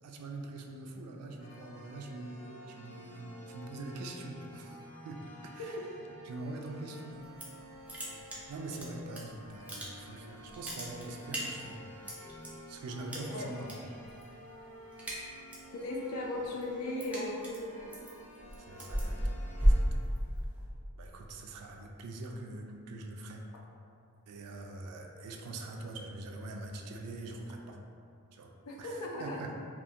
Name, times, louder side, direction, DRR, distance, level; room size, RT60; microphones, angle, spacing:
voice 1, 0.0-5.8 6.2-7.2 8.0-11.8 12.7-13.8 18.6-20.1 21.0-23.5 24.3-27.8 28.3-28.5 28.8-29.5, right 2 dB, 85° right, 2 dB, 0.3 m, -44 dB
sound 1, 1.4-19.8, equal, 30° left, 0.6 m, -51 dB
voice 2, 5.7-6.1 13.3-13.5 15.7-17.9 28.6-29.4, left 1 dB, 90° left, -2 dB, 0.5 m, -37 dB
sound 2, 7.1-7.6 7.9-9.2 9.5-10.2 10.5-12.5 13.1-13.7 14.0-14.4 14.7-15.7 16.1-20.6, equal, 5° right, 0.4 m, -32 dB
2.4 x 2.4 x 2.7 m, 2.4 s
head